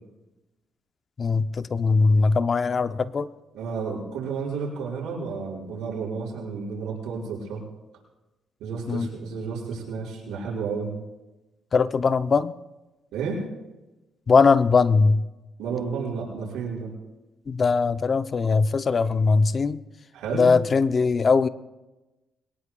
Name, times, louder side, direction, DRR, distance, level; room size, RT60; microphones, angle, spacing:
voice 1, 1.2-3.3 8.9-9.1 11.7-12.6 14.3-15.2 17.5-19.8 20.3-21.5, left 4 dB, 40° left, 13 dB, 0.6 m, -20 dB
voice 2, 3.5-7.6 8.6-10.9 13.1-13.4 15.6-16.9 20.1-20.5, right 5 dB, 90° right, -3 dB, 5.5 m, -31 dB
22.5 x 19.0 x 2.3 m, 1.0 s
cardioid pair, 90°, 0 cm